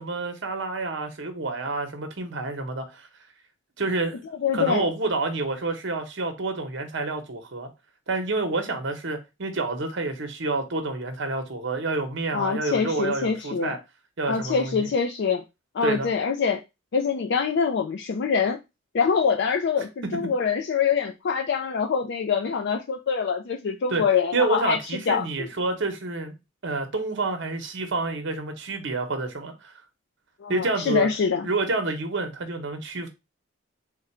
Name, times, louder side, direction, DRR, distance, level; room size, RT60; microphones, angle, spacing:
voice 1, 0.0-3.1 3.8-4.2 4.5-7.7 8.1-13.8 14.2-14.9 15.8-16.1 23.9-24.0 24.3-26.3 26.6-29.7 30.5-31.1 31.4-33.1, right 3 dB, 60° right, 0.9 m, -28 dB
voice 2, 4.4-4.9 12.3-13.8 14.3-15.4 15.7-16.6 16.9-18.6 18.9-24.8 25.1-25.5 30.4-31.5, left 6 dB, 60° left, 0.4 m, -25 dB
3.7 x 2.2 x 4.3 m
head